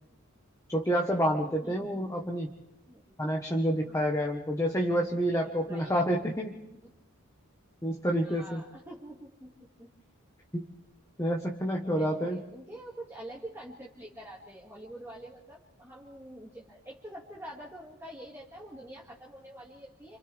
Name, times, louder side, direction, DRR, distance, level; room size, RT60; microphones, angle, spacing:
voice 1, 0.7-2.5 3.2-6.6 7.8-8.6 10.5-10.7 11.2-12.4, equal, 15° left, 1 dB, 1.4 m, -28 dB
voice 2, 1.4-1.9 2.9-3.0 3.8-4.3 5.4-6.1 6.7-6.8 8.1-9.9 11.8-20.2, right 1 dB, 10° right, -5 dB, 2.4 m, -46 dB
29.5 x 26.5 x 3.6 m, 0.94 s
head